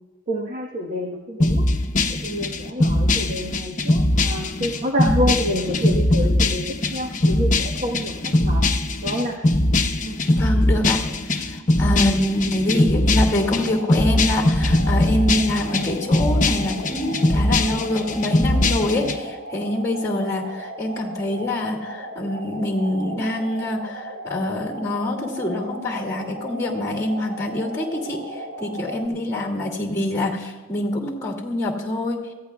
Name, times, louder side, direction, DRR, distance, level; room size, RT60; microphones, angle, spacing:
voice 1, 0.3-1.6 2.2-6.6 6.9-8.6 9.0-9.4 10.0-10.2, equal, 40° right, 0 dB, 1.4 m, -27 dB
sound 1, 1.4-19.1, left 1 dB, 40° left, 1.0 m, -21 dB
voice 2, 10.4-11.0 11.4-32.2, left 1 dB, 15° left, 1 dB, 2.5 m, -25 dB
sound 2, 13.4-29.1, right 2 dB, 65° right, 2.8 m, -36 dB
25.0 x 15.5 x 2.4 m, 1.3 s
head